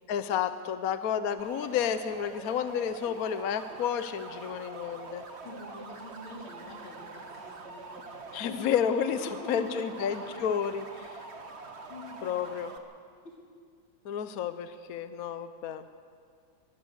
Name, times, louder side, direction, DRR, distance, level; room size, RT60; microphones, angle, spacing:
voice 1, 0.1-5.2 8.3-11.1 12.2-12.7 14.0-15.8, left 8 dB, 55° left, 10 dB, 1.1 m, -31 dB
sound 1, 1.4-12.8, right 3 dB, 35° right, 1.4 m, -45 dB
voice 2, 5.4-8.8 9.1-10.5 11.9-12.5 13.2-13.4, left 3 dB, 75° left, -2 dB, 4.5 m, -45 dB
22.5 x 14.5 x 7.9 m, 2.2 s
omnidirectional pair, 2.2 m